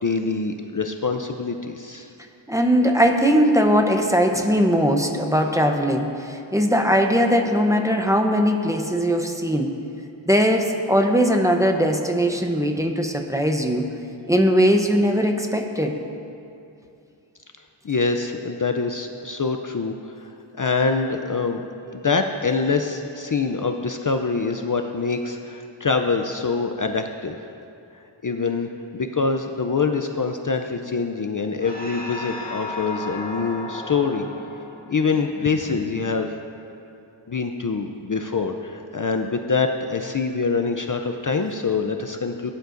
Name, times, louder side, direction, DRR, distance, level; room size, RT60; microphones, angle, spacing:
voice 1, 0.0-2.1 17.8-21.6 21.9-27.5 28.2-34.3 34.9-36.4 37.3-42.5, left 4 dB, 40° left, 5 dB, 0.5 m, -25 dB
voice 2, 2.5-9.7 10.3-13.9 14.3-16.0, equal, 5° right, 3 dB, 0.8 m, -20 dB
sound 1, 31.6-36.4, left 2 dB, 20° left, 1.8 m, -35 dB
17.5 x 10.5 x 2.6 m, 2.6 s
wide cardioid pair, 65°, 49 cm